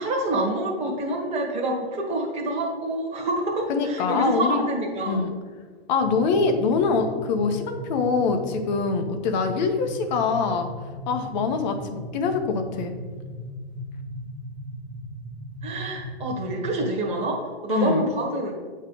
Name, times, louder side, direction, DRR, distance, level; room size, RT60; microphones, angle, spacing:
voice 1, 0.0-5.2 15.6-18.5, right 1 dB, 20° right, 0 dB, 1.3 m, -27 dB
voice 2, 3.7-4.6 5.0-5.3 5.9-10.7 11.1-12.9 17.7-18.1, left 4 dB, 45° left, 6 dB, 0.9 m, -24 dB
sound 1, 6.0-16.9, equal, 35° right, 1.2 m, -37 dB
8.1 x 3.2 x 5.2 m, 1.5 s
hypercardioid pair, 135°, 31 cm